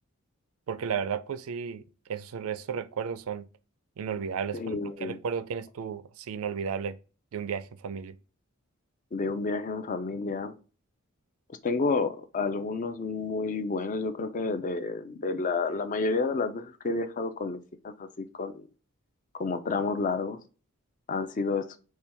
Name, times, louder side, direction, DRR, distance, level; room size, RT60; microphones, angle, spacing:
voice 1, 0.7-1.8 2.1-3.5 4.0-7.0 7.3-8.2, right 6 dB, 80° right, 0.4 m, -33 dB
voice 2, 4.5-5.2 9.1-10.5 11.6-17.6 17.8-18.7 19.4-20.4 21.1-21.7, left 3 dB, 40° left, 0.4 m, -30 dB
4.3 x 2.3 x 3.4 m
head